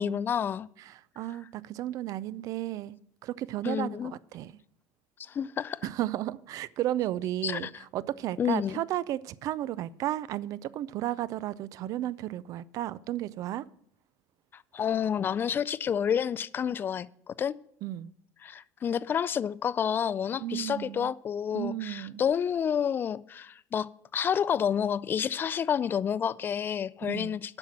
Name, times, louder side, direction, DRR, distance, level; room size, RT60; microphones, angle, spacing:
voice 1, 0.0-0.7 3.6-4.1 5.2-5.8 7.4-7.7 8.4-8.8 14.5-17.5 18.4-27.6, left 8 dB, 30° left, 0.3 m, -29 dB
voice 2, 0.8-3.0 3.2-4.5 5.8-13.6 17.8-18.1 20.4-21.1 21.5-22.2 27.0-27.4, right 13 dB, 50° right, 0.4 m, -33 dB
8.7 x 5.8 x 7.3 m
supercardioid pair, 125°, 7 cm